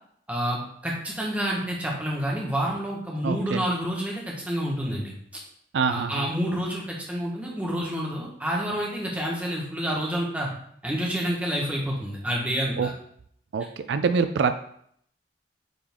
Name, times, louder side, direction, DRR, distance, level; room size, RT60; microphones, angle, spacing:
voice 1, 0.3-5.1 5.9-10.5 10.8-12.9, equal, 10° right, -3 dB, 1.3 m, -28 dB
voice 2, 3.2-3.6 5.7-6.3 12.8-12.9 13.5-14.6, right 5 dB, 75° right, 10 dB, 0.4 m, -25 dB
9.2 x 3.5 x 3.6 m, 0.67 s
head